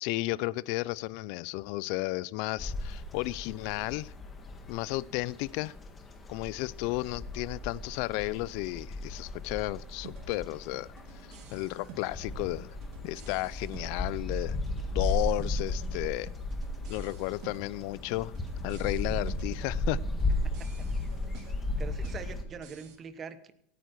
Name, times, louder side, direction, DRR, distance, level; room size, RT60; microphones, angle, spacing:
voice 1, 0.0-4.1 4.7-5.7 6.3-10.9 11.5-12.7 13.0-14.6 14.9-16.3 16.9-18.3 18.6-20.0, left 20 dB, 60° left, 21 dB, 0.4 m, -33 dB
sound 1, 2.6-22.4, left 2 dB, 20° left, 1.7 m, -35 dB
sound 2, 10.0-23.0, right 7 dB, 55° right, 2.4 m, -52 dB
voice 2, 20.4-20.9 21.8-23.5, right 6 dB, 25° right, 12 dB, 1.1 m, -43 dB
17.5 x 9.2 x 4.6 m, 0.74 s
supercardioid pair, 140°, 0 cm